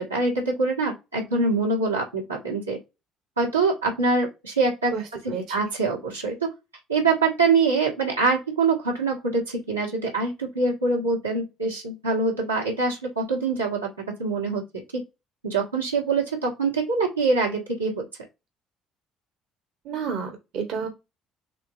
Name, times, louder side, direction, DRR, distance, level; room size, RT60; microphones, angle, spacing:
voice 1, 0.0-2.8 3.4-4.9 5.5-6.5 6.9-13.9 14.2-14.6 15.4-18.0, right 3 dB, 85° right, -4 dB, 1.4 m, -24 dB
voice 2, 5.3-5.6 19.8-20.9, right 6 dB, 55° right, 5 dB, 1.1 m, -30 dB
6.7 x 2.8 x 2.4 m, 0.25 s
figure-of-eight pair, 50°, 0 cm